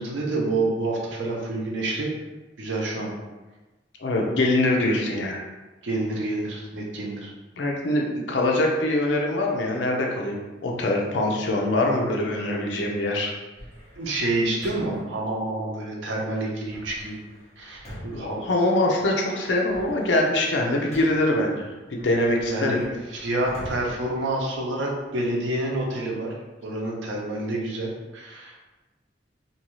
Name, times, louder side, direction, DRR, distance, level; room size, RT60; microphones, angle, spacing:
voice 1, 0.0-2.1 2.6-3.1 5.8-7.3 11.3-11.4 14.0-17.2 17.6-18.5 22.4-26.3 26.6-28.6, right 2 dB, 85° right, -1 dB, 0.6 m, -28 dB
voice 2, 4.0-5.4 7.6-13.3 18.1-22.8, left 1 dB, 70° left, 0 dB, 0.5 m, -23 dB
sound 1, 13.6-15.2 16.7-19.1 19.5-21.4 22.0-25.0, equal, 40° left, 0.9 m, -44 dB
2.6 x 2.3 x 3.0 m, 1.1 s
head